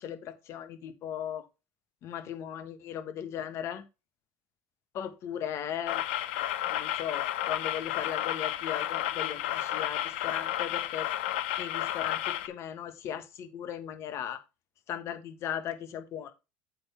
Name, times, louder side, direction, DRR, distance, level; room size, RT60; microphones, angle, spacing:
voice 1, 0.0-1.5 2.0-3.8 4.9-6.1 6.7-11.1 11.6-14.4 14.9-16.3, left 9 dB, 55° left, 1.4 m, -37 dB
sound 1, 5.9-12.5, left 13 dB, 85° left, 0.7 m, -32 dB
7.7 x 3.8 x 5.8 m
supercardioid pair, 80°, 6 cm